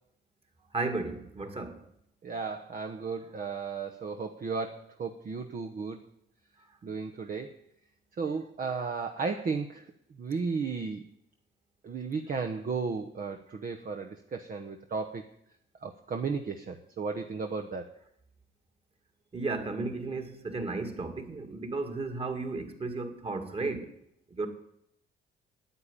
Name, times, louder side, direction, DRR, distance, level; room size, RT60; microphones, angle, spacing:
voice 1, 0.7-1.8 19.3-23.9 24.3-24.5, right 3 dB, 30° right, 2.3 m, -34 dB
voice 2, 2.2-6.0 6.8-7.5 8.1-9.9 10.2-11.0 11.8-15.2 15.8-17.8, right 5 dB, 45° right, 1.1 m, -34 dB
9.6 x 8.8 x 9.9 m
cardioid pair, 90°, 20 cm